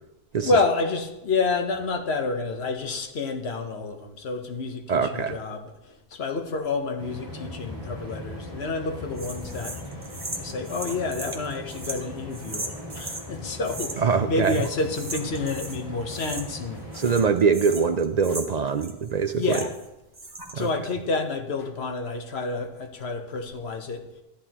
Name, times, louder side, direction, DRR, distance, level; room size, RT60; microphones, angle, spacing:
voice 1, 0.4-9.8 10.4-17.1 19.3-19.8 20.5-24.1, left 3 dB, 85° left, 5 dB, 1.3 m, -29 dB
voice 2, 4.9-5.4 14.0-14.5 16.9-19.6 20.5-20.7, right 5 dB, 50° right, 9 dB, 0.5 m, -23 dB
sound 1, 7.0-17.3, left 1 dB, 45° left, 3.5 m, -39 dB
sound 2, 9.2-13.3 13.6-14.2 14.4-15.8 16.1-16.7 16.9-19.9 20.1-20.7, right 2 dB, 25° right, 1.1 m, -38 dB
13.0 x 11.0 x 2.9 m, 0.96 s
omnidirectional pair, 1.0 m